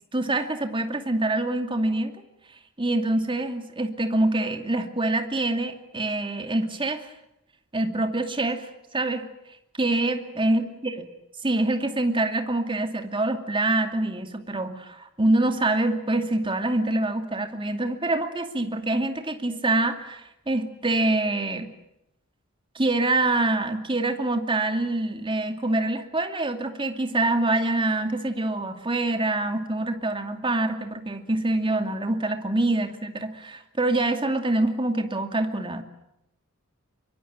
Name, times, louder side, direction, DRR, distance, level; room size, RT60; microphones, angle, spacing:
voice 1, 0.1-2.1 2.8-7.1 7.7-8.7 8.9-9.3 9.8-11.1 11.4-21.7 22.7-35.8, right 2 dB, 25° right, 6 dB, 2.5 m, -25 dB
24.0 x 23.5 x 8.9 m, 0.84 s
head